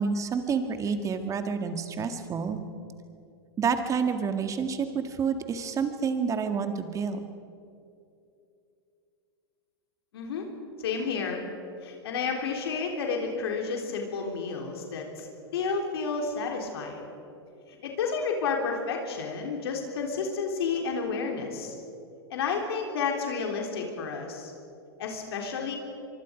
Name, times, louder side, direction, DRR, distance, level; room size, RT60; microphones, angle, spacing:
voice 1, 0.0-2.6 3.6-7.3, right 6 dB, 25° right, 7 dB, 1.9 m, -29 dB
voice 2, 10.1-10.5 10.8-11.4 11.8-15.3 15.5-17.0 17.7-21.8 22.3-24.5 25.0-25.8, left 5 dB, 70° left, 1 dB, 3.8 m, -31 dB
24.5 x 24.5 x 5.2 m, 2.6 s
hypercardioid pair, 115°, 13 cm